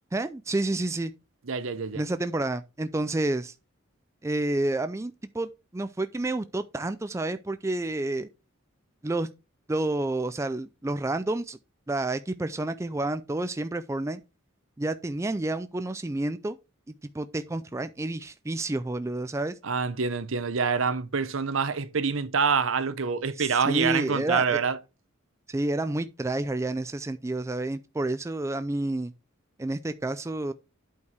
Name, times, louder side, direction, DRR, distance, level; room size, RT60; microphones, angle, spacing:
voice 1, 0.1-1.1 1.9-3.5 4.2-8.3 9.0-9.3 9.7-11.6 11.9-14.2 14.8-16.6 17.1-19.5 23.4-24.6 25.5-29.1 29.6-30.5, right 2 dB, 15° right, 0.3 m, -29 dB
voice 2, 1.5-2.0 19.6-24.8, right 5 dB, 75° right, 0.8 m, -26 dB
8.5 x 4.6 x 4.6 m
head